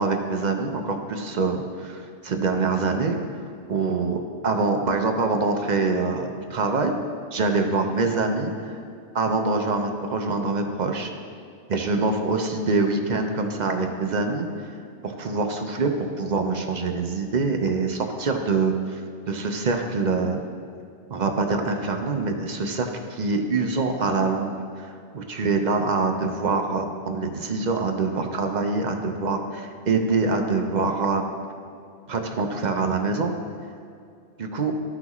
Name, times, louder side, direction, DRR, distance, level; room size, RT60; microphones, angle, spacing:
voice 1, 0.0-3.2 3.7-7.0 7.3-8.8 9.1-11.1 11.7-14.5 15.0-19.0 19.3-20.4 21.1-31.2 32.1-33.3 34.4-34.7, right 3 dB, 45° right, 4 dB, 0.7 m, -25 dB
13.5 x 5.9 x 3.0 m, 2.4 s
omnidirectional pair, 1.2 m